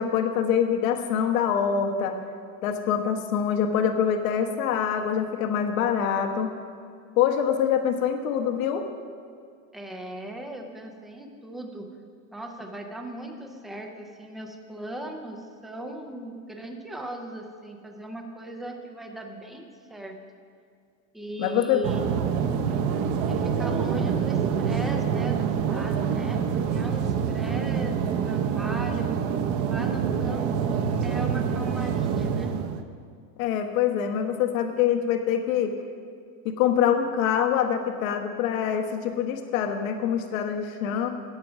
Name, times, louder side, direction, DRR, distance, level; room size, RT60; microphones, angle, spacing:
voice 1, 0.0-2.2 2.6-6.5 7.2-8.9 21.4-21.8 33.4-35.7 36.4-41.1, left 8 dB, 80° left, 5 dB, 1.2 m, -25 dB
voice 2, 9.7-11.9 12.3-20.2 21.1-22.3 23.3-29.1 29.6-32.5, right 1 dB, ahead, 3 dB, 0.3 m, -38 dB
sound 1, 21.8-32.8, right 7 dB, 35° right, 0.7 m, -26 dB
14.0 x 9.1 x 5.9 m, 2.2 s
supercardioid pair, 170°, 40 cm